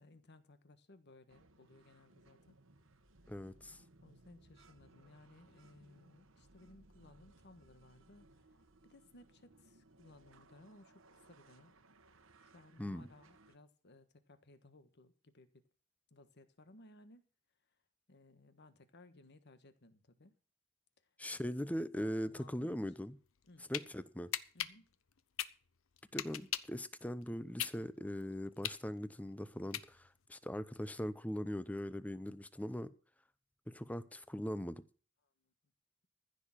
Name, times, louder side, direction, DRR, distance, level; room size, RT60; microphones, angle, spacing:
voice 1, 0.0-2.5 4.0-8.3 8.8-10.9 11.3-11.7 12.4-15.6 16.1-17.2 18.1-20.3 22.0-22.8 23.5-23.7 24.5-24.9 35.4-35.5, left 2 dB, 55° left, 1.4 m, -61 dB
sound 1, 1.3-13.6, right 2 dB, 70° right, 1.3 m, -65 dB
voice 2, 3.3-3.8 12.8-13.1 21.2-23.2 23.7-24.3 26.1-32.9 33.7-34.8, equal, 5° left, 0.7 m, -40 dB
sound 2, 23.3-23.9 24.3-26.8 27.2-30.3, left 12 dB, 85° left, 0.7 m, -40 dB
15.0 x 6.6 x 7.3 m
head